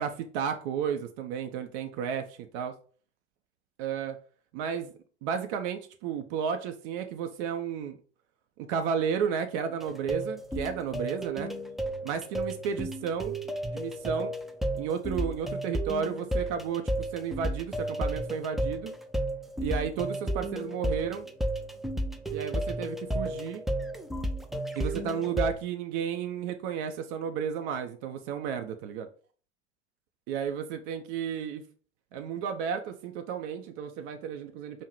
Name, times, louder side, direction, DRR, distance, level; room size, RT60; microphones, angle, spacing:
voice 1, 0.0-2.7 3.8-4.2 4.5-4.9 5.2-8.0 8.6-11.5 12.0-13.4 13.7-14.3 14.7-18.9 19.6-21.3 22.3-23.6 24.8-29.1 30.3-31.6 32.1-34.8, right 7 dB, 50° right, 0.6 m, -33 dB
sound 1, 9.8-25.5, right 1 dB, ahead, 0.3 m, -33 dB
5.4 x 2.1 x 4.6 m
figure-of-eight pair, 80°, 34 cm